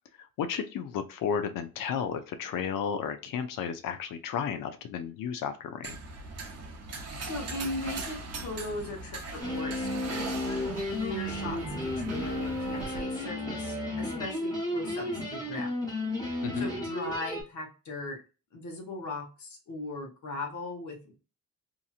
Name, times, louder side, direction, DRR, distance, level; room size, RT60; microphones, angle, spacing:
voice 1, 0.4-6.0 16.4-16.7, left 7 dB, 90° left, 9 dB, 0.6 m, -33 dB
sound 1, 5.8-13.0, right 3 dB, 50° right, 0.7 m, -40 dB
voice 2, 7.2-15.7 16.6-18.2 18.5-21.2, left 2 dB, 60° left, 0 dB, 1.1 m, -38 dB
sound 2, 9.4-17.4, left 1 dB, 10° left, 1.2 m, -33 dB
2.9 x 2.6 x 2.4 m, 0.32 s
wide cardioid pair, 155°, 32 cm